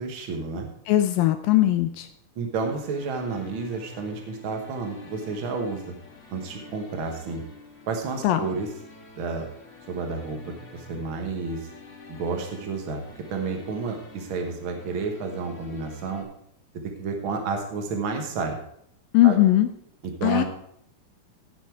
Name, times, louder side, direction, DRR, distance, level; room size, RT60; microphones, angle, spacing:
voice 1, 0.0-0.7 2.3-5.9 6.3-7.4 7.9-8.7 9.2-9.5 9.9-10.4 10.7-11.7 12.1-13.0 13.3-16.3 17.0-18.6 19.2-19.4 20.0-20.4, right 4 dB, 75° right, 3 dB, 1.2 m, -30 dB
voice 2, 0.9-2.1 8.2-8.4 19.1-19.7 20.2-20.4, left 14 dB, 80° left, 9 dB, 2.2 m, -19 dB
sound 1, 2.5-16.2, left 4 dB, 30° left, 1.3 m, -48 dB
16.5 x 7.0 x 4.6 m, 0.69 s
omnidirectional pair, 4.4 m